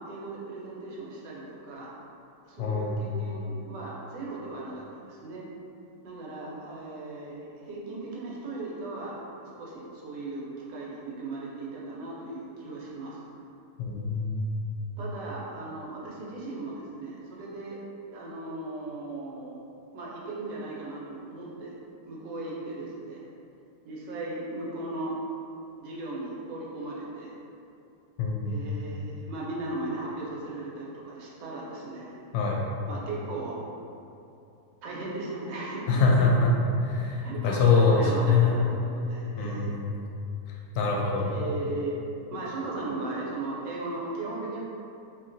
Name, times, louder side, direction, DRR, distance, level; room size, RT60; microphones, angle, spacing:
voice 1, 0.0-1.9 2.5-5.5 6.0-9.2 9.6-13.3 15.0-17.8 18.1-19.6 19.9-21.8 22.0-23.2 23.8-25.2 25.8-27.4 28.4-32.1 32.9-33.6 34.8-36.3 37.2-39.7 41.3-42.0 42.3-44.6, right 2 dB, 90° right, -5 dB, 1.3 m, -37 dB
voice 2, 2.6-2.9 13.8-14.5 28.2-28.6 32.3-32.6 35.9-36.5 36.8-38.6 39.4-40.0 40.7-41.5, left 4 dB, 85° left, -2 dB, 1.2 m, -24 dB
2.9 x 2.8 x 2.5 m, 2.7 s
omnidirectional pair, 1.8 m